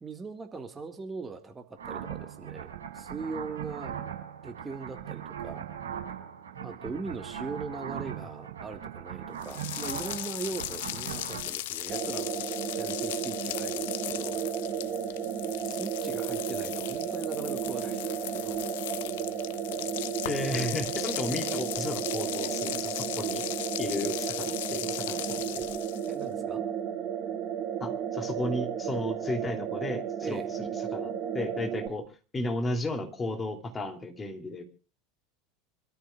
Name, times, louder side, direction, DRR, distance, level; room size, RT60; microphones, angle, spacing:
voice 1, 0.0-3.9 4.4-5.7 6.6-12.4 12.8-14.4 15.6-18.6 26.1-26.6 30.2-30.5, right 4 dB, 20° right, 6 dB, 1.9 m, -40 dB
sound 1, 1.8-11.4, right 9 dB, 65° right, 6.2 m, -39 dB
sound 2, 9.4-26.2, left 15 dB, 60° left, 0.6 m, -37 dB
sound 3, 11.9-31.9, right 8 dB, 40° right, 1.9 m, -33 dB
voice 2, 20.2-23.5 23.8-25.6 27.8-32.1 32.3-34.6, left 2 dB, 20° left, 4 dB, 3.0 m, -34 dB
26.5 x 14.0 x 2.4 m, 0.35 s
figure-of-eight pair, 75°, 0 cm